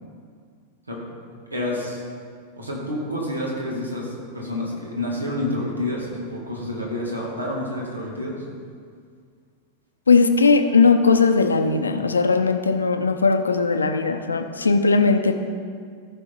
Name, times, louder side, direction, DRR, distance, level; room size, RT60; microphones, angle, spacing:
voice 1, 1.5-2.0 2.6-8.4, left 1 dB, 80° right, -2 dB, 2.1 m, -28 dB
voice 2, 10.1-15.3, left 4 dB, 75° left, 7 dB, 0.7 m, -18 dB
14.5 x 6.2 x 4.5 m, 2.1 s
figure-of-eight pair, 90°, 0 cm